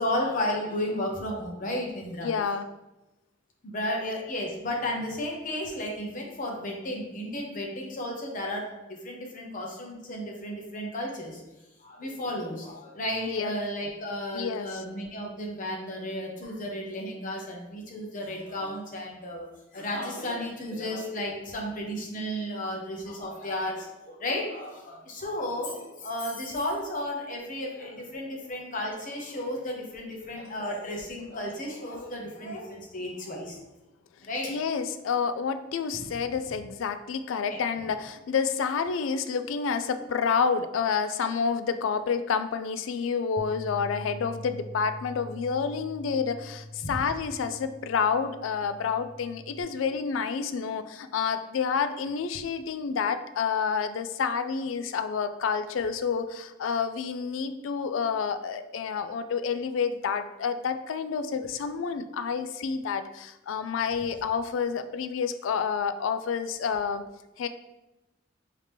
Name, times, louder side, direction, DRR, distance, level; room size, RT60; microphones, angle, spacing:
voice 1, 0.0-2.3 3.6-11.4 11.8-19.5 19.7-33.6 34.2-34.5 35.9-36.1 37.5-37.6 46.8-47.0, left 1 dB, 45° left, 0 dB, 0.8 m, -33 dB
voice 2, 2.2-2.7 13.3-13.6 14.3-14.8 34.5-67.0 67.4-67.5, left 6 dB, 85° left, 11 dB, 0.3 m, -29 dB
Bass guitar, 43.4-49.6, equal, 20° right, 0.3 m, -43 dB
4.9 x 2.8 x 3.4 m, 0.98 s
head